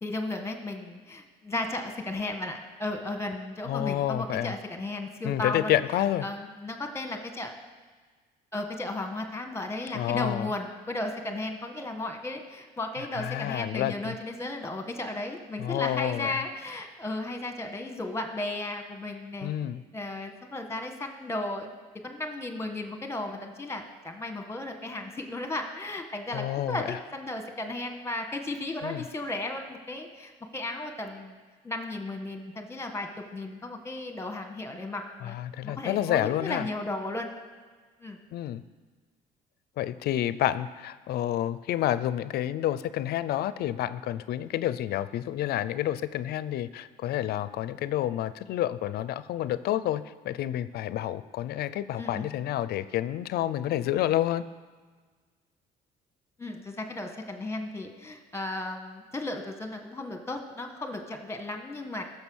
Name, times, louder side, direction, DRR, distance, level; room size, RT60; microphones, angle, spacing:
voice 1, 0.0-5.7 6.2-7.5 8.5-19.5 19.9-21.7 22.0-31.4 31.6-35.4 35.6-37.3 38.0-38.2 52.0-52.3 56.4-62.0, left 2 dB, 15° left, 5 dB, 1.5 m, -35 dB
voice 2, 3.6-4.5 5.2-6.3 9.9-10.5 13.1-14.1 15.6-16.4 19.4-19.8 26.3-27.0 28.8-29.0 35.2-36.7 38.3-38.6 39.8-54.4, left 12 dB, 70° left, 15 dB, 0.5 m, -29 dB
15.0 x 6.7 x 6.3 m, 1.5 s
cardioid pair, 110°, 17 cm